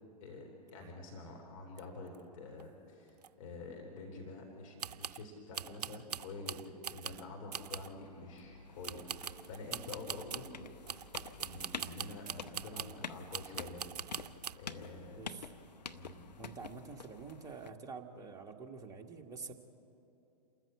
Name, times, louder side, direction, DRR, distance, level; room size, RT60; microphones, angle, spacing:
voice 1, 0.2-10.5 11.4-13.9 14.6-15.4 15.9-16.4, left 3 dB, 50° left, 1 dB, 3.5 m, -48 dB
sound 1, 1.8-1.9 2.1-2.2 2.6-2.7 3.2-3.3 4.8-5.2 5.5-7.2 7.5-8.0 8.8-10.5 10.9-13.0 13.3-14.6, right 8 dB, 70° right, 0.5 m, -43 dB
sound 2, 7.7-17.7, left 5 dB, 80° left, 0.8 m, -49 dB
voice 2, 15.1-15.5 16.4-19.5, right 4 dB, 15° right, 2 dB, 1.6 m, -47 dB
27.5 x 14.0 x 8.3 m, 2.8 s
figure-of-eight pair, 110°, 21 cm